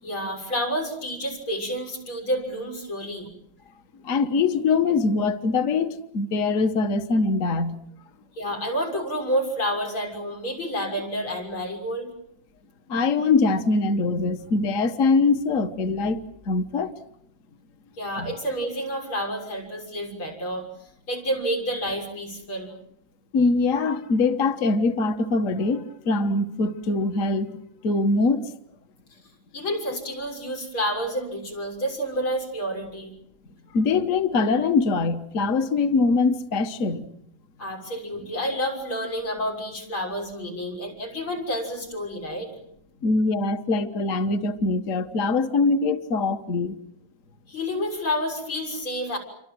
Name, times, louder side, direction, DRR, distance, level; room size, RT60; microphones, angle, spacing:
voice 1, 0.0-3.3 8.3-12.1 18.0-20.7 21.1-22.7 29.5-33.1 37.6-42.5 47.5-49.2, equal, 90° left, 7.4 m, -29 dB
voice 2, 4.0-7.7 12.9-16.9 18.2-18.3 23.3-27.6 27.8-28.5 33.7-37.1 43.0-46.7, left 3 dB, 45° left, 1.6 m, -23 dB
29.0 x 25.0 x 7.7 m
omnidirectional pair, 2.2 m